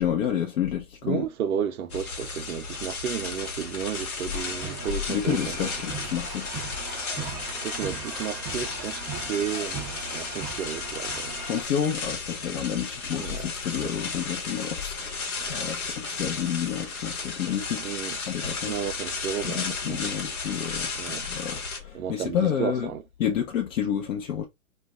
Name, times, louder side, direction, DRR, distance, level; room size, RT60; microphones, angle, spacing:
voice 1, 0.0-1.2 5.1-6.5 11.4-18.0 18.3-18.7 19.4-22.9 23.2-24.5, left 9 dB, 70° left, 0.6 m, -29 dB
voice 2, 1.0-5.6 7.6-11.4 13.2-13.5 13.8-13.9 15.4-15.5 17.8-18.2 18.7-20.1 20.9-21.3 21.9-23.0, right 8 dB, 80° right, 0.6 m, -33 dB
sound 1, 1.9-21.8, left 4 dB, 85° left, 1.1 m, -34 dB
sound 2, 4.3-11.6, right 4 dB, 10° right, 0.4 m, -38 dB
2.3 x 2.2 x 3.4 m
hypercardioid pair, 120°, 42 cm